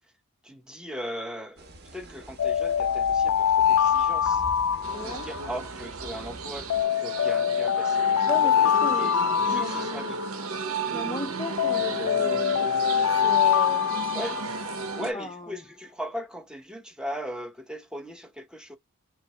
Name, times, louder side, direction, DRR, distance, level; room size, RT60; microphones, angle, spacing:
voice 1, 0.4-4.4 5.0-8.3 8.6-9.2 9.5-10.2 14.1-14.4 15.0-18.8, equal, 5° right, 0.8 m, -38 dB
sound 1, 1.6-6.8, right 1 dB, 50° right, 1.2 m, -45 dB
sound 2, 2.4-5.6 6.7-10.5 11.6-14.8, left 8 dB, 85° left, 0.4 m, -24 dB
sound 3, 4.8-15.1, right 4 dB, 70° right, 0.8 m, -34 dB
voice 2, 4.9-5.3 8.3-9.1 9.4-10.1 10.9-14.0 15.1-15.5, left 2 dB, 20° left, 0.5 m, -36 dB
5.8 x 2.0 x 3.3 m
head